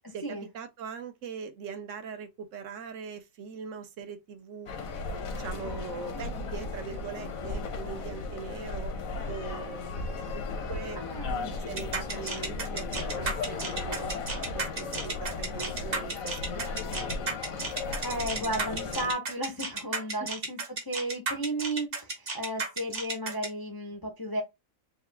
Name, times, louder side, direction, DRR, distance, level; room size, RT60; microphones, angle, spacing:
voice 1, 0.1-4.7 5.4-8.9 9.3-10.2 10.7-11.0 11.7-17.4 20.2-20.3, right 6 dB, 70° right, 1.0 m, -41 dB
sound 1, 4.7-19.1, left 4 dB, 80° left, 1.3 m, -36 dB
voice 2, 6.1-6.5 11.0-11.5 18.0-24.4, right 1 dB, 30° left, 0.4 m, -34 dB
sound 2, 11.8-23.5, right 3 dB, 45° right, 1.2 m, -33 dB
4.7 x 2.4 x 3.2 m
omnidirectional pair, 1.4 m